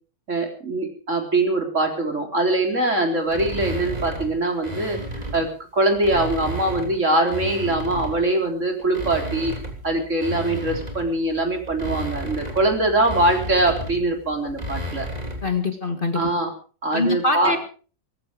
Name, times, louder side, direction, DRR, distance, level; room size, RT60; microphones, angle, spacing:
voice 1, 0.3-5.5 5.7-9.5 9.8-15.1 16.1-16.5 16.8-17.6, right 2 dB, 50° right, 3 dB, 4.3 m, -22 dB
sound 1, 3.3-5.5 5.9-8.3 8.8-15.5, equal, 25° right, 3.5 m, -33 dB
voice 2, 15.4-16.2 16.9-17.6, left 2 dB, 35° left, 7 dB, 1.9 m, -23 dB
19.0 x 15.0 x 4.9 m, 0.40 s
omnidirectional pair, 1.6 m